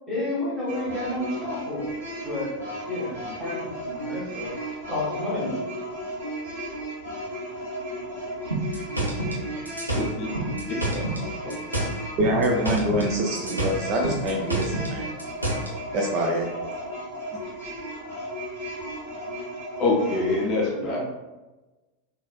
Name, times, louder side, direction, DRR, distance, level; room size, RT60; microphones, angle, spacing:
voice 1, 0.1-1.9 2.2-2.5 2.9-5.6 20.6-21.1, left 1 dB, 10° right, -6 dB, 1.4 m, -31 dB
sound 1, 0.7-20.5, equal, 60° right, 1.2 m, -35 dB
sound 2, 8.5-11.2 11.5-13.1 13.3-15.7, right 1 dB, 85° right, 0.7 m, -28 dB
voice 2, 9.9-11.0 11.4-11.9 19.8-21.1, left 2 dB, 35° left, -2 dB, 0.6 m, -27 dB
voice 3, 12.2-15.1 15.9-16.5, right 1 dB, 35° right, -1 dB, 0.4 m, -25 dB
4.0 x 2.4 x 2.2 m, 1.1 s
figure-of-eight pair, 90°, 0 cm